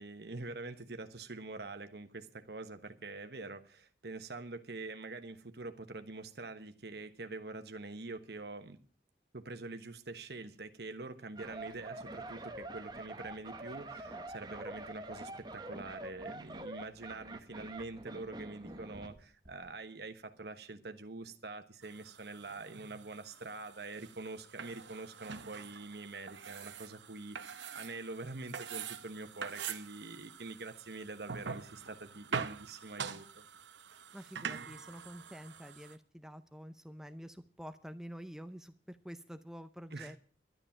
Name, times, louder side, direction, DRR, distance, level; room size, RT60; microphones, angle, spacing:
voice 1, 0.0-8.8 9.3-33.4 39.9-40.2, right 3 dB, 65° right, 1.2 m, -45 dB
sound 1, 11.4-19.2 19.4-19.7, right 2 dB, 25° right, 1.0 m, -46 dB
sound 2, 21.8-36.0, right 6 dB, 90° right, 0.9 m, -45 dB
voice 2, 34.1-40.2, equal, 5° right, 0.6 m, -48 dB
12.0 x 9.5 x 7.2 m
head